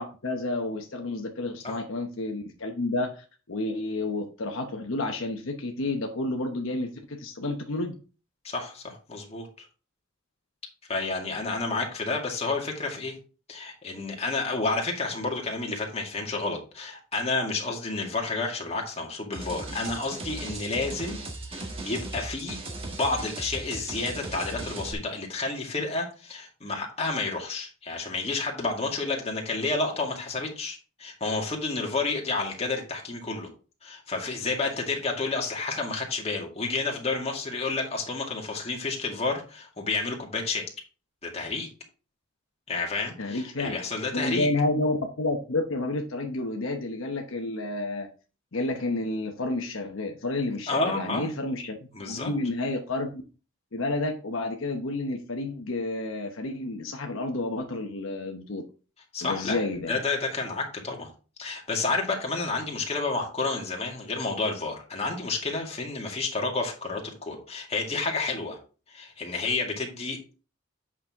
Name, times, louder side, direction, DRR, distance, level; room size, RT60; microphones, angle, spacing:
voice 1, 0.0-7.9 43.2-43.8 44.1-48.1 48.5-51.8 52.0-53.2 53.7-58.6 59.2-60.0, left 2 dB, 65° left, 3 dB, 1.0 m, -30 dB
voice 2, 8.4-9.7 10.9-13.2 13.5-21.2 21.5-33.5 33.8-40.6 41.2-41.7 42.7-44.5 50.7-51.3 51.9-52.3 59.1-59.6 59.9-61.1 61.4-68.6 68.9-70.3, left 3 dB, 30° left, 0 dB, 2.0 m, -30 dB
sound 1, 19.3-24.9, right 2 dB, 25° right, 1.5 m, -37 dB
8.5 x 6.1 x 3.6 m, 0.35 s
head